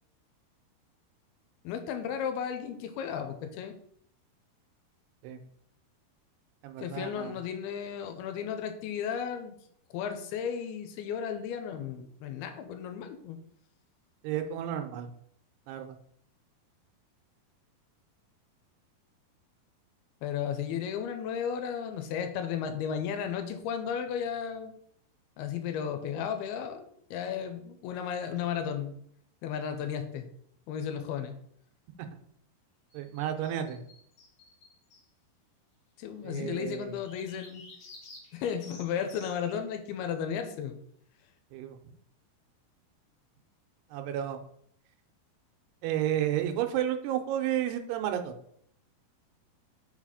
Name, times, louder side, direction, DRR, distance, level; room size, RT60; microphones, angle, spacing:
voice 1, 1.6-3.7 6.8-9.6 9.9-13.4 20.2-24.7 25.4-28.9 29.4-30.3 30.7-31.3 36.0-37.6 38.3-40.8, left 8 dB, 80° left, 7 dB, 2.6 m, -34 dB
voice 2, 6.6-7.4 14.2-15.1 15.7-16.0 32.9-33.8 36.2-37.0 41.5-41.8 43.9-44.4 45.8-48.4, right 11 dB, 85° right, 6 dB, 2.8 m, -32 dB
sound 1, 32.9-35.0 36.9-39.6, left 3 dB, 55° left, 2.4 m, -52 dB
5.9 x 4.0 x 4.9 m, 0.67 s
omnidirectional pair, 4.6 m